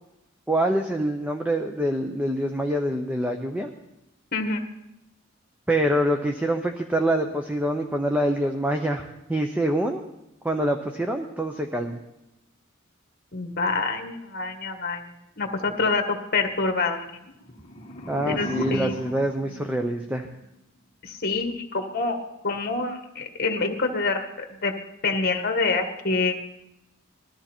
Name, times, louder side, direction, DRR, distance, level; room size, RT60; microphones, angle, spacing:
voice 1, 0.5-3.7 5.7-10.1 10.4-12.0 18.1-20.3, right 1 dB, 5° right, 4 dB, 0.8 m, -25 dB
voice 2, 13.3-15.0 15.4-17.0 18.2-18.9 21.0-24.7 25.0-26.3, left 3 dB, 45° left, 6 dB, 1.6 m, -26 dB
sound 1, 17.3-20.4, equal, 25° left, 1.7 m, -36 dB
20.5 x 13.5 x 4.5 m, 0.87 s
head